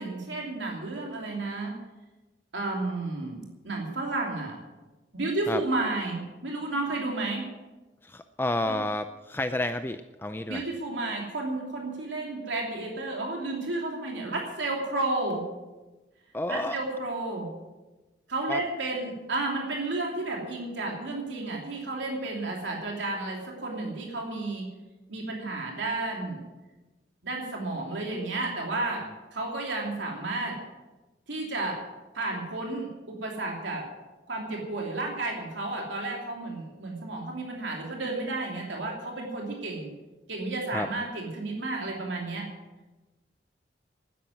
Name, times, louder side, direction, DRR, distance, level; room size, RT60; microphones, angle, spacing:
voice 1, 0.0-1.7 2.5-4.6 5.1-7.4 8.6-8.7 10.5-15.4 16.5-17.5 18.3-24.7 25.1-26.4 27.2-29.0 29.3-30.6 31.3-31.8 32.1-33.8 34.3-39.9 40.3-42.4, right 2 dB, 80° right, -1 dB, 2.9 m, -32 dB
voice 2, 8.0-10.6 16.3-16.8 18.5-18.6 40.7-40.9, left 1 dB, 10° left, 9 dB, 0.4 m, -30 dB
12.0 x 10.0 x 9.3 m, 1.1 s
head